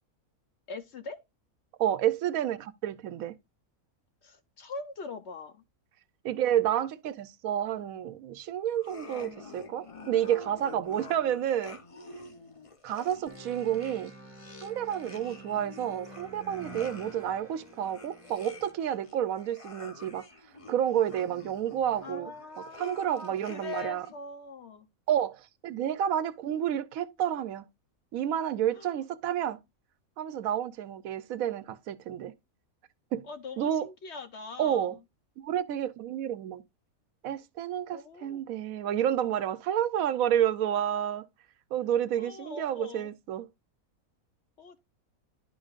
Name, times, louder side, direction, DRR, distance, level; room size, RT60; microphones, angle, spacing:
voice 1, 0.7-1.2 4.2-5.6 22.0-24.9 28.7-29.0 33.2-35.0 37.9-38.4 42.2-43.1 44.6-44.8, left 4 dB, 55° left, 0.9 m, -42 dB
voice 2, 1.8-3.3 6.2-11.8 12.8-14.1 14.6-20.3 20.7-22.3 22.8-24.1 25.1-27.6 28.1-29.6 30.2-32.3 33.1-33.3 33.6-33.9 34.6-34.9 35.4-36.6 37.2-41.2 41.7-43.5, right 10 dB, 75° right, 1.0 m, -30 dB
sound 1, 8.7-24.1, left 3 dB, 35° left, 0.6 m, -48 dB
sound 2, 13.3-19.2, right 2 dB, 10° right, 2.1 m, -49 dB
11.0 x 5.1 x 2.4 m
omnidirectional pair, 1.5 m